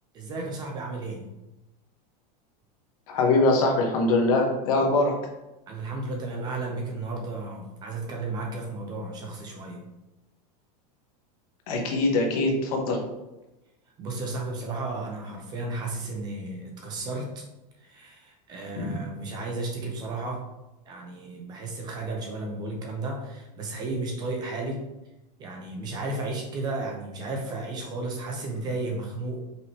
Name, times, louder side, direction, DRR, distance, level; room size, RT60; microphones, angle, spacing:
voice 1, 0.1-1.3 5.7-9.8 14.0-17.4 17.8-20.4 20.8-24.8 25.4-29.4, right 2 dB, 20° right, 0 dB, 0.5 m, -33 dB
voice 2, 3.1-5.2 11.7-13.0 18.8-19.0, left 2 dB, 60° left, 1 dB, 1.1 m, -23 dB
5.2 x 3.1 x 2.9 m, 0.98 s
supercardioid pair, 175°, 21 cm